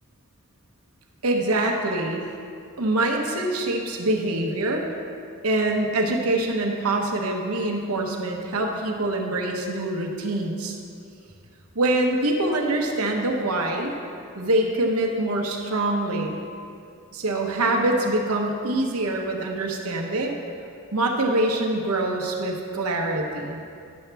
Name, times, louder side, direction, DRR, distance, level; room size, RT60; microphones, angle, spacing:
voice 1, 1.2-2.2 2.8-4.9 5.4-10.8 11.7-13.9 14.3-16.4 17.1-20.3 20.9-23.6, right 2 dB, 75° right, 1 dB, 1.0 m, -24 dB
10.5 x 7.1 x 3.4 m, 2.4 s
head